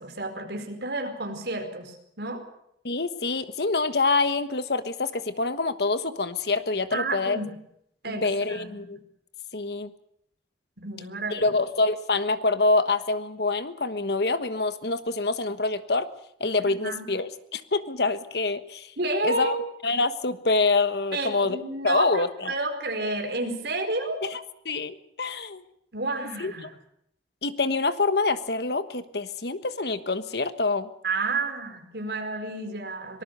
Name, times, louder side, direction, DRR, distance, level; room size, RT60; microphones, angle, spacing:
voice 1, 0.0-2.4 6.9-7.5 8.0-8.8 10.8-11.6 16.8-17.1 19.0-19.6 21.1-24.2 25.9-26.7 31.0-33.2, right 2 dB, 65° right, 4 dB, 4.6 m, -31 dB
voice 2, 2.8-7.4 8.1-9.0 9.5-9.9 11.3-16.1 16.4-18.9 19.2-19.5 19.8-21.6 21.8-22.5 24.2-25.6 26.4-26.7 27.4-30.9, left 3 dB, 65° left, 12 dB, 1.3 m, -26 dB
24.5 x 19.0 x 6.8 m, 0.74 s
head